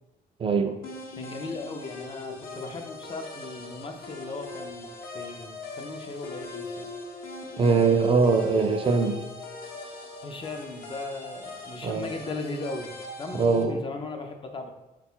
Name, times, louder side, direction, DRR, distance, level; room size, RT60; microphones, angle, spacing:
voice 1, 0.4-0.8 7.6-9.2 11.8-12.1 13.3-13.8, right 4 dB, 35° right, 5 dB, 0.3 m, -22 dB
sound 1, 0.8-13.6, left 2 dB, 65° left, 0.8 m, -41 dB
voice 2, 1.2-6.9 10.2-14.7, left 3 dB, 30° left, 4 dB, 0.4 m, -37 dB
3.9 x 2.2 x 4.3 m, 0.97 s
cardioid pair, 120°, 16 cm